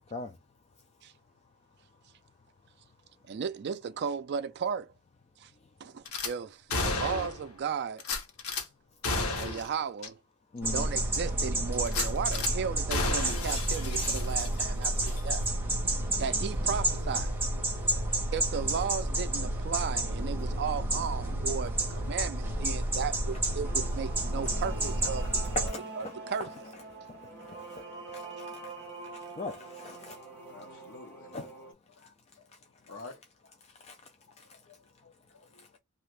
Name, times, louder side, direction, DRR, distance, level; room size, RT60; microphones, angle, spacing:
voice 1, 3.3-4.9 5.4-5.5 5.8-8.0 9.4-10.2 10.7-15.4 16.2-17.3 18.3-25.7 26.0-26.5, right 6 dB, 50° right, 0.3 m, -35 dB
Gunshot gunfire / Glass, 6.1-6.3 6.7-7.5 8.0-8.6 9.0-9.7 10.0-10.1 10.6-10.7 11.8-12.5 12.9-14.7 15.0-15.2, left 3 dB, 85° left, 0.9 m, -32 dB
voice 2, 10.5-10.9 25.6-26.1 27.6-27.9 28.1-28.5 29.1-30.2 31.3-31.5 34.4-34.5, left 2 dB, 30° left, 0.3 m, -39 dB
sound 1, 10.6-25.7, right 1 dB, 10° right, 1.2 m, -30 dB
sound 2, 23.6-31.7, right 3 dB, 10° left, 1.4 m, -45 dB
voice 3, 30.5-31.3 31.9-32.1 32.9-33.1 34.7-34.8 35.0-35.6, left 3 dB, 60° left, 1.0 m, -49 dB
2.8 x 2.4 x 3.2 m
head